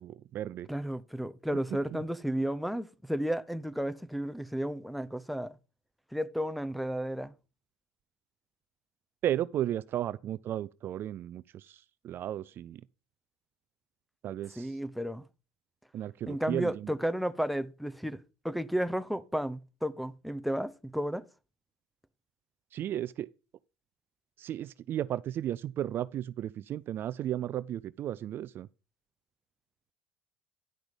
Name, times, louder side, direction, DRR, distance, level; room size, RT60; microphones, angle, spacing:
voice 1, 0.0-0.7 9.2-12.8 14.2-14.7 15.9-16.9 22.7-23.3 24.4-28.7, right 11 dB, 45° right, 0.4 m, -34 dB
voice 2, 0.7-5.5 6.1-7.3 14.6-15.2 16.3-18.2 18.4-21.2, equal, ahead, 0.7 m, -33 dB
10.5 x 6.0 x 5.1 m
supercardioid pair, 95°, 5 cm